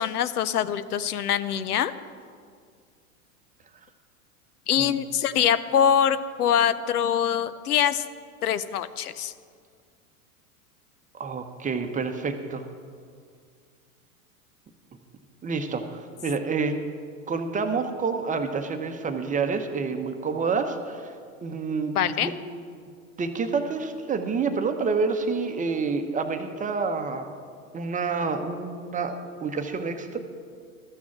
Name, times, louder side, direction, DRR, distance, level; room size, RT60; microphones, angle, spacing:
voice 1, 0.0-1.9 4.7-8.1 8.4-9.3 21.9-22.3, left 9 dB, 85° left, 14 dB, 0.7 m, -24 dB
voice 2, 11.1-12.6 15.4-16.8 17.3-21.1 21.4-22.3 23.2-27.3 27.7-30.2, right 4 dB, 15° right, 6 dB, 0.9 m, -28 dB
13.0 x 6.1 x 7.2 m, 2.1 s
hypercardioid pair, 100°, 44 cm